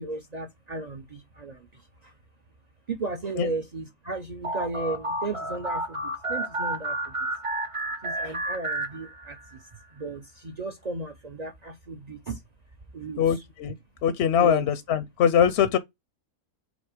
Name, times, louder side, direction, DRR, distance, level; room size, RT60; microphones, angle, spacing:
voice 1, 0.0-1.6 2.9-7.0 8.0-9.4 10.0-12.4 12.9-13.2 14.3-14.7, right 3 dB, 50° right, 0.5 m, -34 dB
sound 1, 4.4-9.5, right 1 dB, 25° right, 0.8 m, -31 dB
voice 2, 13.2-13.7 14.0-15.8, left 8 dB, 60° left, 0.7 m, -22 dB
5.2 x 4.1 x 5.0 m
omnidirectional pair, 1.6 m